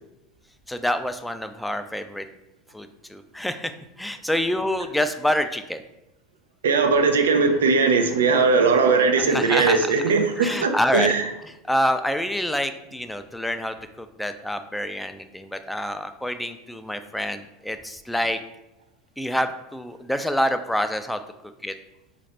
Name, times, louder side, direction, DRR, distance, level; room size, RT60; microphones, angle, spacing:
voice 1, 0.7-2.3 2.7-3.7 4.0-5.8 9.3-9.9 10.4-11.1 11.7-18.4 19.2-21.2 21.6-21.7, equal, 5° left, 8 dB, 0.3 m, -27 dB
voice 2, 6.6-11.2, right 4 dB, 90° right, 6 dB, 0.4 m, -19 dB
4.1 x 2.5 x 3.2 m, 0.93 s
hypercardioid pair, 95°, 0 cm